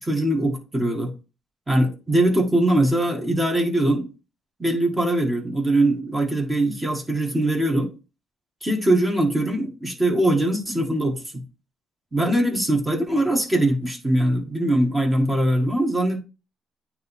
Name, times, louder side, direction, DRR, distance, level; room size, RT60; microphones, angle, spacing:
voice 1, 0.0-1.1 1.7-4.1 4.6-7.9 8.6-11.4 12.1-16.2, right 1 dB, 15° right, 1.7 m, -22 dB
9.1 x 3.0 x 4.2 m
cardioid pair, 90°, 0 cm